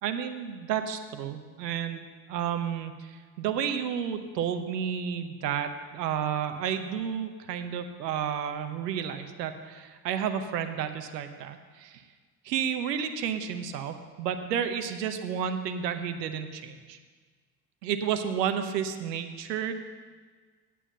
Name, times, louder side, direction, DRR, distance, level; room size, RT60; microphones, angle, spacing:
voice 1, 0.0-12.0 12.4-17.0 17.8-19.7, right 8 dB, 85° right, 8 dB, 0.9 m, -31 dB
9.3 x 8.5 x 7.0 m, 1.5 s
hypercardioid pair, 60°, 48 cm